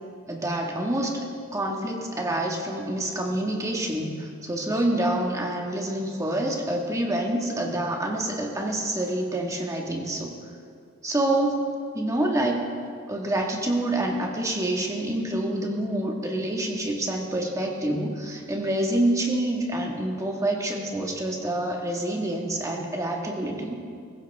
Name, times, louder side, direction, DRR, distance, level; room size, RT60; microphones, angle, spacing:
voice 1, 0.3-1.2 1.5-10.3 11.0-11.7 12.0-12.6 13.1-23.7, right 1 dB, 15° right, 0 dB, 1.7 m, -27 dB
22.5 x 15.5 x 3.6 m, 2.2 s
head